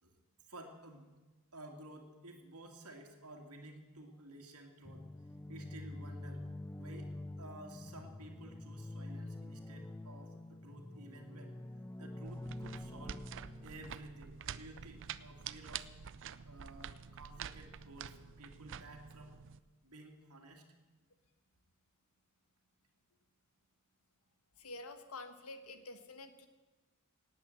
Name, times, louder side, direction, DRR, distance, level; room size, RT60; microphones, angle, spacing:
voice 1, 0.5-1.1 1.5-5.1 5.5-6.5 6.8-7.1 7.4-11.6 12.0-13.2 13.6-15.9 16.4-19.3 19.8-20.6, right 1 dB, 75° right, 2 dB, 2.2 m, -53 dB
sound 1, 4.8-13.9, left 1 dB, 10° left, 0.4 m, -47 dB
sound 2, 12.2-19.6, right 8 dB, 60° right, 0.5 m, -47 dB
voice 2, 24.6-26.5, left 2 dB, 70° left, 9 dB, 1.5 m, -48 dB
18.5 x 8.9 x 7.6 m, 1.2 s
head